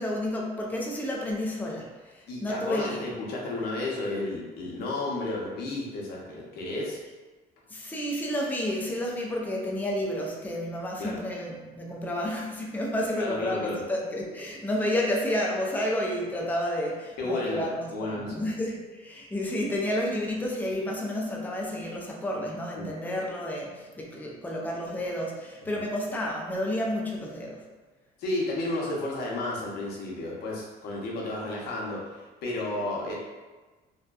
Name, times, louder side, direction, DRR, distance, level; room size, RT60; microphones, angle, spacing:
voice 1, 0.0-3.0 7.7-27.6, left 1 dB, 10° left, -2 dB, 0.4 m, -31 dB
voice 2, 2.3-7.0 11.0-11.2 13.2-13.8 17.2-17.6 17.9-18.4 22.7-22.9 28.2-33.1, left 2 dB, 70° left, -3 dB, 0.7 m, -32 dB
2.6 x 2.1 x 2.3 m, 1.3 s
cardioid pair, 110°, 17 cm